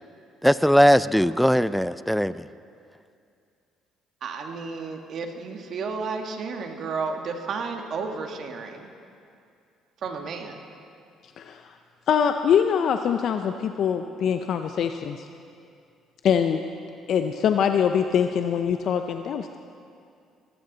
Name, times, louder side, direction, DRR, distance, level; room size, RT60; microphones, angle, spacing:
voice 1, 0.4-2.4, equal, ahead, 16 dB, 0.4 m, -19 dB
voice 2, 4.2-8.9 10.0-10.6, right 4 dB, 55° right, 4 dB, 1.5 m, -32 dB
voice 3, 11.4-11.7 12.1-15.3 16.2-16.6 17.1-19.6, left 8 dB, 60° left, 7 dB, 0.5 m, -23 dB
18.5 x 14.5 x 4.0 m, 2.4 s
cardioid pair, 95°, 0 cm